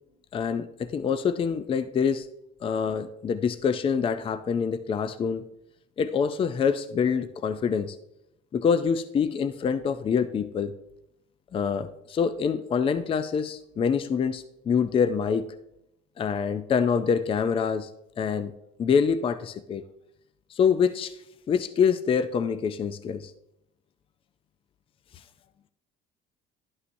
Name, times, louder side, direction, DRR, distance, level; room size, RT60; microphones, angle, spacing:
voice 1, 0.3-2.3 2.6-5.4 6.0-8.0 8.5-10.7 11.5-15.5 16.2-17.9 18.2-18.5 18.8-19.8 20.5-21.1 21.5-23.3, left 6 dB, 30° left, 11 dB, 0.4 m, -25 dB
11.5 x 5.5 x 2.6 m, 0.80 s
cardioid pair, 105°, 17 cm